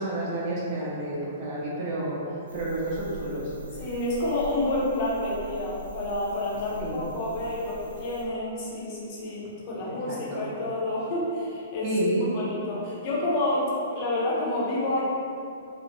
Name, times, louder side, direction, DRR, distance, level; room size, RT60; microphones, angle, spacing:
voice 1, 0.0-3.5 6.8-7.0 9.8-10.5 11.8-12.4, right 1 dB, 40° right, -7 dB, 0.7 m, -30 dB
sound 1, 2.5-8.2, right 2 dB, 75° right, 0.3 m, -43 dB
voice 2, 3.8-11.9 12.3-15.0, left 1 dB, 40° left, -6 dB, 0.6 m, -29 dB
2.4 x 2.0 x 2.8 m, 2.6 s
figure-of-eight pair, 115°, 0 cm